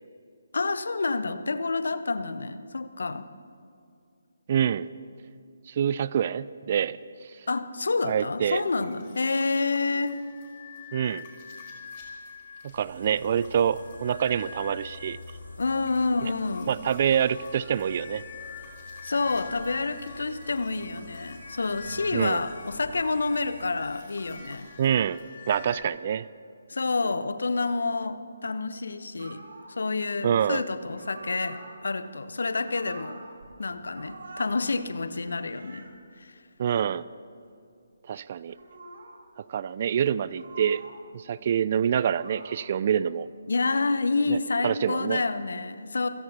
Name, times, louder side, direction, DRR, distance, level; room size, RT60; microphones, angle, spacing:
voice 1, 0.5-3.2 7.5-10.2 15.6-16.7 19.0-24.7 26.7-29.4 29.7-33.2 33.6-35.9 36.2-36.4 43.5-46.1, left 3 dB, 65° left, 12 dB, 0.9 m, -28 dB
voice 2, 4.5-4.9 5.7-7.0 8.0-8.6 10.9-11.3 12.6-15.2 16.7-18.2 22.1-22.4 24.8-25.2 25.5-26.2 30.2-30.6 36.6-37.0 38.1-38.5 39.4-40.8 41.1-43.3 44.3-44.4 44.6-45.2, right 8 dB, 40° right, 18 dB, 0.4 m, -26 dB
sound 1, 8.6-25.8, left 5 dB, 35° left, 4.4 m, -46 dB
sound 2, 12.7-23.7, left 2 dB, 80° left, 3.8 m, -48 dB
sound 3, 29.2-29.8 30.8-31.8 32.4-33.5 33.8-34.6 35.1-35.9 36.6-36.8 38.4-39.2 40.2-41.0 41.7-42.8 43.6-44.0, right 2 dB, 55° right, 2.3 m, -46 dB
27.5 x 16.5 x 2.9 m, 2.5 s
figure-of-eight pair, 145°, 0 cm